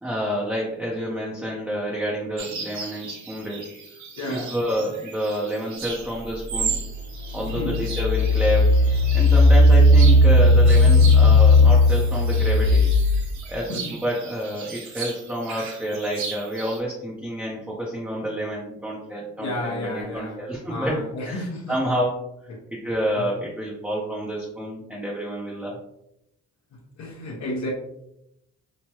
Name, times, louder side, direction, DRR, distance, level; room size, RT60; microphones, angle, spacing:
voice 1, 0.0-3.7 4.3-6.8 7.3-8.7 9.1-12.9 13.5-21.0 21.2-22.2 22.7-25.8, equal, 5° right, -5 dB, 0.6 m, -28 dB
sound 1, 2.4-16.8, right 5 dB, 70° right, 0.9 m, -36 dB
voice 2, 4.2-4.5 7.5-7.8 19.4-20.4 20.7-21.7 23.2-23.3 27.0-27.7, left 1 dB, 65° left, -3 dB, 0.8 m, -31 dB
Engine, 6.7-6.8 7.4-13.3, left 2 dB, 55° right, 1.2 m, -15 dB
3.0 x 2.2 x 2.9 m, 0.82 s
cardioid pair, 90°, 30 cm